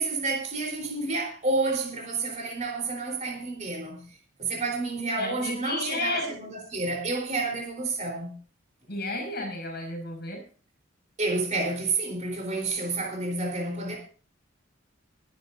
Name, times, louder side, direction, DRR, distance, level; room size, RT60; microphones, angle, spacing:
voice 1, 0.0-4.0 4.4-8.3 11.2-14.0, right 3 dB, 40° right, 3.9 m, -29 dB
voice 2, 5.2-6.3 8.9-10.4, left 2 dB, 55° left, 5.8 m, -32 dB
22.5 x 10.5 x 2.6 m
head